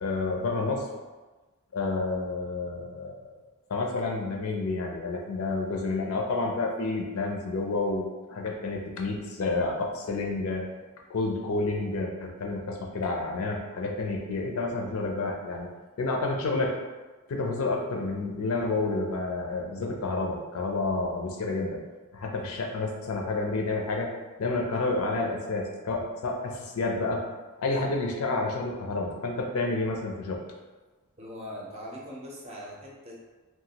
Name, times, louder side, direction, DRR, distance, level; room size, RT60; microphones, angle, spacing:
voice 1, 0.0-0.9 1.7-3.4 3.7-10.7 11.1-15.7 16.0-16.8 17.3-21.8 22.1-24.1 24.4-27.3 27.6-30.4, left 3 dB, 65° left, 1 dB, 0.4 m, -29 dB
voice 2, 31.2-33.1, equal, 30° right, -4 dB, 0.5 m, -41 dB
2.8 x 2.3 x 2.8 m, 1.3 s
head